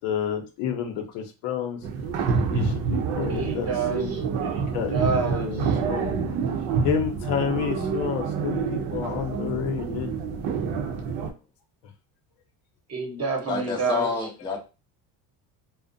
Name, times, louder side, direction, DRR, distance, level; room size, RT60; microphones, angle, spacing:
voice 1, 0.0-1.8 2.3-4.1 4.7-6.1 6.8-10.1 11.8-11.9 13.8-14.0, left 8 dB, 80° left, 0.8 m, -30 dB
sound 1, 1.8-11.3, right 5 dB, 70° right, 0.7 m, -27 dB
voice 2, 3.3-5.8 12.9-14.1, right 4 dB, 35° right, 0.9 m, -29 dB
voice 3, 13.5-14.6, left 5 dB, 10° left, 0.5 m, -28 dB
2.5 x 2.1 x 2.5 m
cardioid pair, 105°, 45 cm